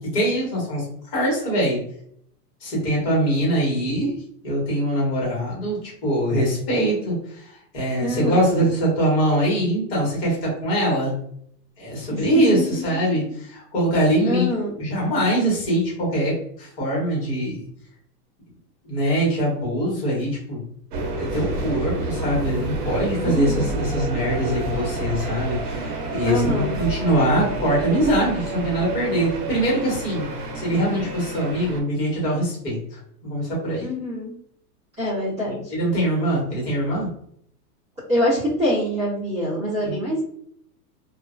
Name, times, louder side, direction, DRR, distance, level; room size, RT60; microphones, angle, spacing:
voice 1, 0.1-0.8 1.1-1.8 2.6-4.1 4.4-11.1 11.8-14.5 14.8-17.6 18.8-20.6 21.2-30.3 30.5-33.9 35.5-37.1 39.8-40.0, right 1 dB, 35° left, -4 dB, 1.1 m, -23 dB
voice 2, 8.0-8.6 12.1-12.6 14.2-14.7 23.2-23.7 26.2-26.8 33.8-34.3 35.0-35.6 38.1-40.2, equal, 20° right, -12 dB, 0.7 m, -25 dB
sound 1, 20.9-31.8, right 2 dB, 75° right, 0.8 m, -29 dB
2.4 x 2.1 x 2.4 m, 0.67 s
supercardioid pair, 175°, 48 cm